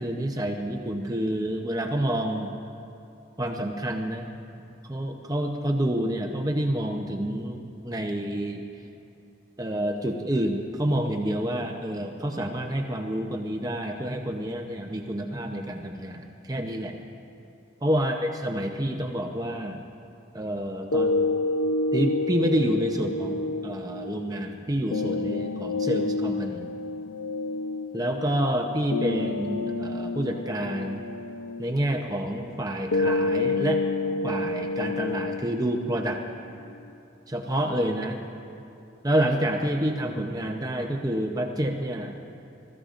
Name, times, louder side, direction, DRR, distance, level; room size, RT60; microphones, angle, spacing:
voice 1, 0.0-2.5 3.4-4.3 4.9-8.6 9.6-17.0 17.8-19.8 20.3-21.3 21.9-26.7 27.9-31.1 31.6-33.8 34.2-36.2 37.3-38.2 39.0-42.1, right 1 dB, 20° right, 2 dB, 0.7 m, -28 dB
sound 1, 20.9-36.9, left 3 dB, 80° left, 0.6 m, -29 dB
25.5 x 14.5 x 2.5 m, 2.7 s
head